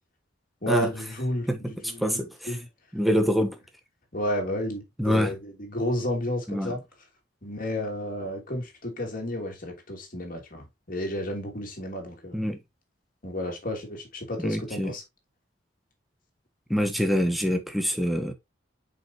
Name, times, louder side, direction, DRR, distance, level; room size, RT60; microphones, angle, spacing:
voice 1, 0.6-1.5 1.8-2.2 2.5-2.7 4.1-6.8 7.4-12.4 13.2-15.0, left 1 dB, 45° left, 2.8 m, -31 dB
voice 2, 1.5-2.6 2.9-3.6 5.0-5.3 6.5-6.8 12.3-12.6 14.4-14.9 16.7-18.3, equal, ahead, 1.2 m, -25 dB
7.1 x 5.5 x 2.8 m
head